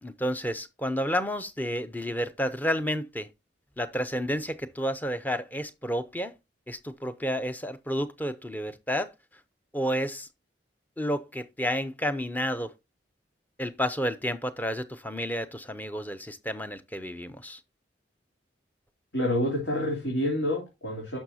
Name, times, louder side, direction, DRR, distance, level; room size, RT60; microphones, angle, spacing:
voice 1, 0.0-3.3 3.8-6.3 6.7-9.1 9.7-10.3 11.0-12.7 13.6-17.6, equal, 10° left, 0.6 m, -30 dB
voice 2, 19.1-21.2, left 1 dB, 75° left, 3.3 m, -28 dB
11.0 x 6.2 x 2.8 m
head